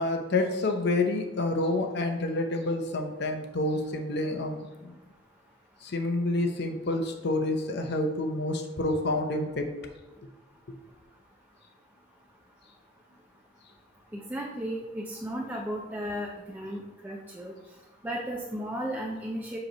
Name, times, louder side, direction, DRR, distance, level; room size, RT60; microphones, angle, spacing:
voice 1, 0.0-4.9 5.8-9.6, left 2 dB, 60° left, 4 dB, 0.6 m, -28 dB
voice 2, 14.1-17.5 18.0-19.6, equal, 10° right, -2 dB, 0.6 m, -35 dB
7.6 x 3.1 x 5.1 m, 1.1 s
head